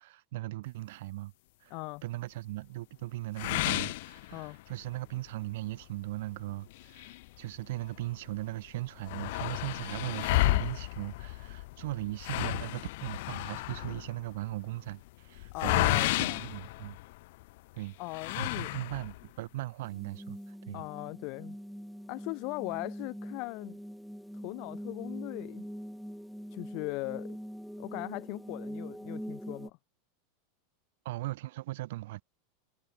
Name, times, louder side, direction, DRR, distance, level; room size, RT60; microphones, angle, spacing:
voice 1, 0.0-1.3 1.6-1.8 2.0-17.0 17.7-18.0 18.4-20.8 31.0-32.2, right 18 dB, 70° right, 0.6 m, -38 dB
voice 2, 1.7-2.0 4.3-4.6 15.5-16.5 18.0-18.7 20.7-21.5 22.1-23.8 24.4-25.7 26.5-27.4 27.8-29.8, left 29 dB, 45° left, 0.7 m, -39 dB
sound 1, 3.4-4.8 5.3-5.4 5.8-5.9 6.7-8.0 8.4-8.5 8.7-17.4 18.1-19.3, left 20 dB, 65° left, 0.3 m, -32 dB
sound 2, 19.8-29.7, equal, ahead, 0.6 m, -43 dB
supercardioid pair, 150°, 0 cm